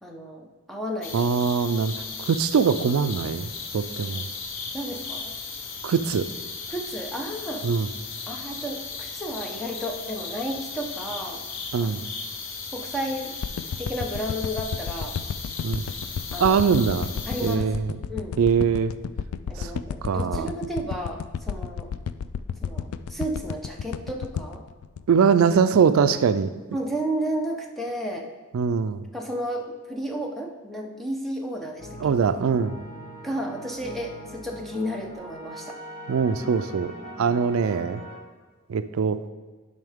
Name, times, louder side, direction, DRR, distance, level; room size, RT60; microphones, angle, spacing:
voice 1, 0.0-1.3 4.7-5.3 6.7-7.6 8.3-11.4 11.8-12.0 12.7-13.3 13.8-15.2 16.3-16.6 17.3-17.7 18.1-18.4 19.5-21.9 22.6-24.6 26.7-28.3 29.1-32.1 33.2-35.8, equal, ahead, 0 dB, 0.8 m, -32 dB
sound 1, 1.0-17.6, left 5 dB, 60° left, 0.9 m, -36 dB
voice 2, 1.1-1.9 2.3-4.2 5.8-6.3 7.6-7.9 11.7-12.0 15.6-15.8 16.4-17.1 17.4-17.9 18.4-18.9 19.6-19.7 20.0-20.5 25.1-26.5 28.5-29.0 32.0-32.7 36.1-36.9 37.2-38.0 38.7-39.2, right 6 dB, 75° right, 11 dB, 0.4 m, -22 dB
sound 2, 13.4-25.7 26.2-26.3, left 7 dB, 85° left, 0.3 m, -32 dB
sound 3, 31.8-38.2, equal, 30° left, 1.9 m, -41 dB
11.0 x 5.4 x 3.6 m, 1.4 s
head